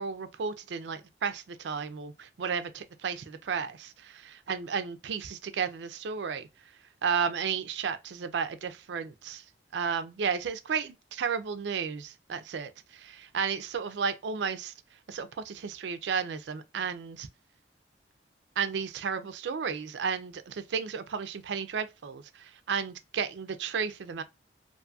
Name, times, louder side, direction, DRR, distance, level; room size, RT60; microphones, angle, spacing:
voice 1, 0.0-6.5 7.0-9.4 9.7-14.7 15.1-17.3 18.6-24.2, right 6 dB, 80° right, 0.4 m, -33 dB
2.6 x 2.3 x 2.5 m
head